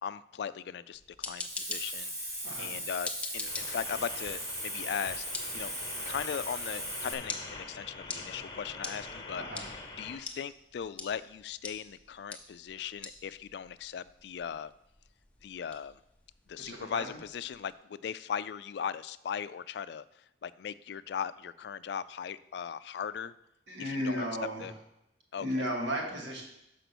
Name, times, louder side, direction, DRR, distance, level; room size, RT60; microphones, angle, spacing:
voice 1, 0.0-2.1 2.6-5.2 5.5-5.7 6.1-9.4 10.0-14.7 15.4-16.0 16.5-23.3 23.8-24.3 24.6-24.7 25.3-25.7, left 7 dB, 65° left, 15 dB, 0.3 m, -38 dB
sound 1, 0.9-17.7, left 3 dB, 5° left, 0.6 m, -46 dB
Hiss, 1.4-7.1, right 1 dB, 15° right, 1.0 m, -38 dB
voice 2, 2.4-2.8 9.3-9.6 16.6-17.0 23.7-24.7 25.4-26.4, equal, 80° right, -1 dB, 1.8 m, -34 dB
sound 2, 3.5-10.2, left 3 dB, 25° left, 1.1 m, -45 dB
6.7 x 5.0 x 6.0 m, 0.83 s
head